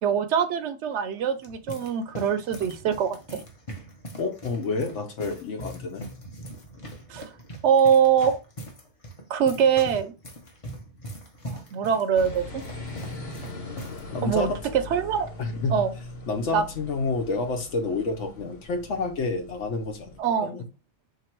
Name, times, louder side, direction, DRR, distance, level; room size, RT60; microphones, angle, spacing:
voice 1, 0.0-3.4 7.1-7.3 7.6-8.4 9.3-10.1 11.4-12.6 14.2-14.5 14.7-15.3 15.7-15.9 16.5-16.6 20.2-20.6, right 7 dB, 85° right, 0.9 m, -23 dB
sound 1, 1.1-14.0 14.3-14.4 15.2-15.5, right 1 dB, 35° left, 0.8 m, -42 dB
voice 2, 4.2-6.1 14.1-14.6 15.4-15.8 16.3-20.7, left 3 dB, 85° left, 1.2 m, -29 dB
sound 2, 12.1-20.2, left 1 dB, 65° left, 1.2 m, -40 dB
3.4 x 2.9 x 4.5 m
omnidirectional pair, 1.2 m